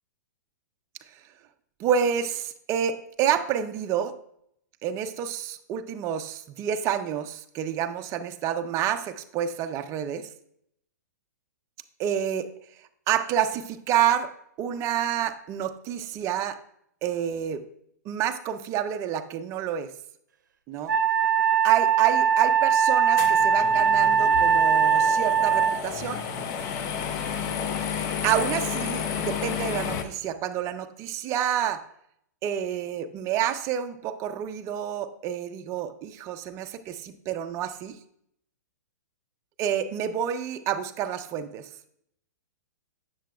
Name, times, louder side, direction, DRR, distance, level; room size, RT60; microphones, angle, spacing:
voice 1, 1.8-4.2 4.8-10.3 12.0-12.5 13.1-14.3 14.6-16.6 17.0-17.6 18.1-19.9 20.7-20.9 21.6-26.2 27.9-31.8 32.4-38.0 39.6-41.7, right 9 dB, 30° right, 9 dB, 0.4 m, -28 dB
Wind instrument woodwind instrument, 20.9-25.8, right 7 dB, 75° right, 0.6 m, -21 dB
sound 1, 23.2-30.0, left 7 dB, 35° left, 0.6 m, -31 dB
7.2 x 6.8 x 2.3 m, 0.71 s
hypercardioid pair, 130°, 10 cm